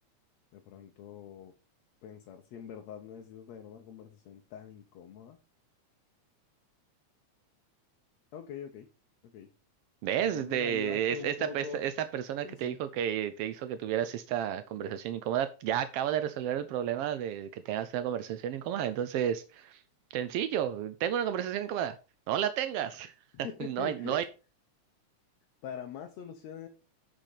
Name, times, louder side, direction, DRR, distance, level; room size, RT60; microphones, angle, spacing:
voice 1, 0.5-1.5 2.0-5.4 8.3-8.9 9.2-9.5 10.2-11.8 12.4-12.8 23.3-24.2 25.6-26.7, left 8 dB, 70° left, 4 dB, 2.1 m, -43 dB
voice 2, 10.0-19.8 20.1-22.0 22.3-23.1 23.6-24.2, right 10 dB, 80° right, 11 dB, 1.3 m, -31 dB
9.0 x 5.9 x 4.9 m, 0.31 s
omnidirectional pair, 3.4 m